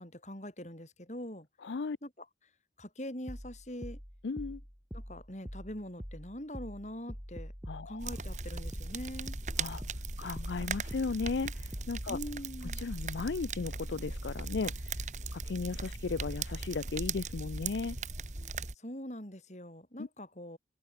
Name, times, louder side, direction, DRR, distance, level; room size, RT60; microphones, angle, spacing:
voice 1, 0.0-1.5 2.0-2.3 2.8-4.0 4.9-7.5 7.9-9.4 12.1-12.8 18.8-20.6, equal, 40° left, 5.4 m, -43 dB
voice 2, 1.6-2.0 4.2-4.6 7.7-8.1 9.6-9.8 10.2-12.2 12.8-15.0 15.3-18.0 20.0-20.1, left 4 dB, 80° left, 0.5 m, -36 dB
sound 1, 3.3-12.0, equal, 10° right, 7.6 m, -45 dB
sound 2, 8.0-18.7, right 3 dB, 40° right, 2.5 m, -38 dB
open air
head